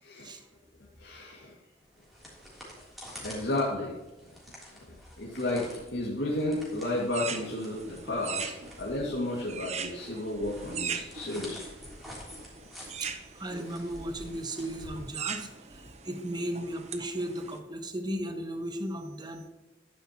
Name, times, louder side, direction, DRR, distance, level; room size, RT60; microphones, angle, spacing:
voice 1, 0.0-0.3 1.0-1.5 3.2-3.9 5.2-8.5 8.8-11.6, left 1 dB, 75° left, -3 dB, 2.2 m, -32 dB
sound 1, 1.8-15.6, equal, ahead, 3.3 m, -49 dB
sound 2, 6.8-17.6, right 6 dB, 40° right, 0.9 m, -41 dB
voice 2, 13.0-19.5, right 1 dB, 25° right, 6 dB, 1.2 m, -36 dB
11.5 x 10.0 x 3.0 m, 1.1 s
head